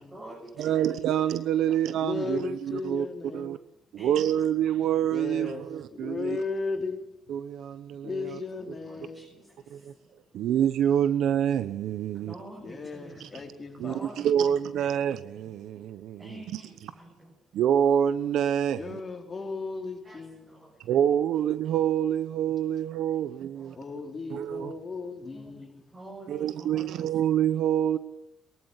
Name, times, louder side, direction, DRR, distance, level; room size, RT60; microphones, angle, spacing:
voice 1, 0.0-1.2 1.7-1.8 4.0-4.2 8.2-8.4 8.8-10.4 12.1-14.6 14.9-15.1 16.2-17.6 20.0-20.9 23.6-23.9 25.2-25.5 25.9-27.2, right 1 dB, 25° right, 7.2 m, -48 dB
voice 2, 0.6-3.1 3.3-3.6 4.0-6.4 7.3-8.4 9.7-9.9 10.3-12.3 13.2-13.3 13.8-16.2 16.5-16.6 17.5-19.0 20.8-23.7 24.3-24.7 26.3-28.0, right 10 dB, 80° right, 0.9 m, -26 dB
voice 3, 2.0-3.5 5.1-7.0 8.0-9.2 12.6-14.0 18.8-20.6 23.7-25.8, left 4 dB, 35° left, 4.2 m, -36 dB
23.0 x 14.5 x 9.9 m
cardioid pair, 90°, 0 cm